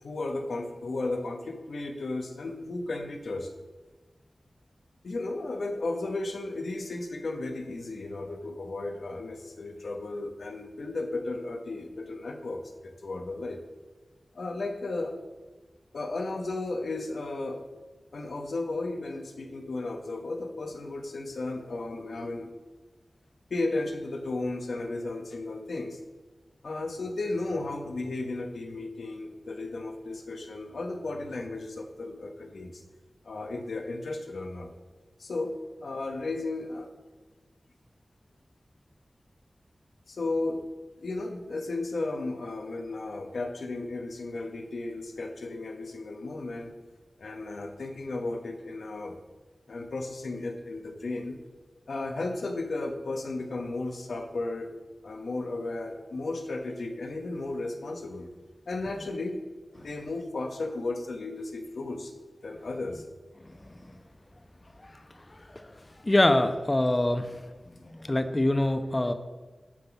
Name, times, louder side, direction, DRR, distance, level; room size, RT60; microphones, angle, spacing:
voice 1, 0.0-3.5 5.0-13.6 14.3-15.1 15.9-17.6 18.1-22.5 23.5-26.0 26.6-32.8 33.2-34.7 35.2-35.5 35.8-36.9 40.1-40.6 41.0-46.7 47.2-49.2 49.7-51.4 51.9-54.7 55.0-58.3 58.7-59.4 59.7-62.1 62.4-63.0, left 2 dB, 90° left, 4 dB, 1.0 m, -34 dB
voice 2, 66.0-67.5 67.8-69.1, left 1 dB, 35° left, 9 dB, 0.8 m, -25 dB
9.0 x 4.0 x 7.0 m, 1.2 s
cardioid pair, 45°, 0 cm